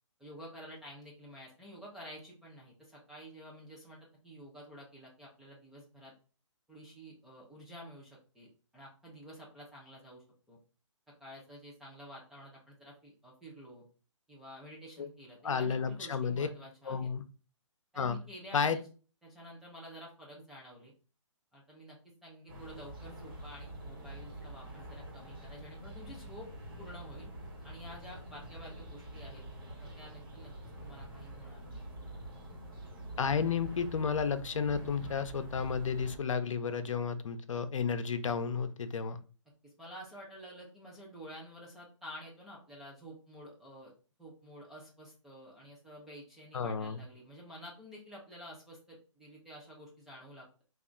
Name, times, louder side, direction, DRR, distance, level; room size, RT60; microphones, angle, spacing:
voice 1, 0.2-6.1 6.7-10.6 11.2-13.8 14.3-17.1 17.9-18.8 19.2-20.9 21.5-26.5 26.8-27.3 27.6-29.4 29.7-30.5 30.8-32.4 39.6-43.9 44.2-50.6, equal, ahead, -5 dB, 0.4 m, -50 dB
voice 2, 15.4-16.5 16.9-17.2 18.0-18.2 18.5-18.8 33.2-39.2 46.5-47.0, left 6 dB, 80° left, 10 dB, 0.6 m, -32 dB
sound 1, 22.5-36.2, right 1 dB, 45° right, 1.2 m, -46 dB
3.4 x 2.4 x 3.7 m, 0.36 s
hypercardioid pair, 165°, 16 cm